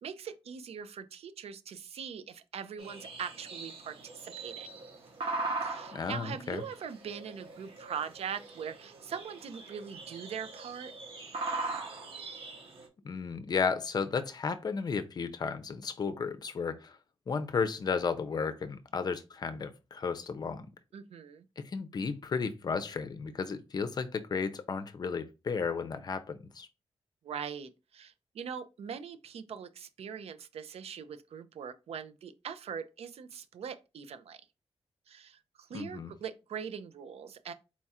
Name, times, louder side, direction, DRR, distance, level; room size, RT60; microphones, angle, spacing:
voice 1, 0.0-4.7 5.6-10.9 20.9-21.4 27.2-34.4 35.1-37.5, right 7 dB, 90° right, 0.5 m, -41 dB
sound 1, 2.8-12.9, right 3 dB, 65° right, 1.1 m, -40 dB
voice 2, 5.9-6.6 13.0-17.0 17.3-20.7 21.6-26.7 35.7-36.1, left 5 dB, 40° left, 0.5 m, -33 dB
4.3 x 2.4 x 4.1 m
wide cardioid pair, 170°, 10 cm